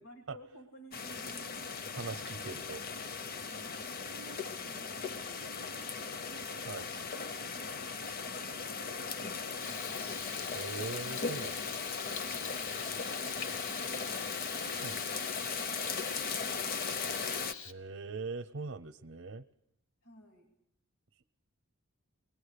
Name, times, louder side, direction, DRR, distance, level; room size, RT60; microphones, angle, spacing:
voice 1, 0.0-1.8 3.5-10.4 12.5-17.5 20.0-20.5, right 1 dB, 80° left, 3 dB, 2.5 m, -56 dB
sound 1, 0.9-17.5, left 5 dB, 45° left, 0.8 m, -38 dB
voice 2, 1.9-2.8 6.7-6.9 10.5-11.7 14.8-15.0 17.6-19.4, right 4 dB, 60° right, 10 dB, 0.7 m, -41 dB
Frying (food), 9.6-17.7, left 6 dB, 60° left, 1.4 m, -46 dB
24.0 x 20.0 x 6.7 m, 0.78 s
head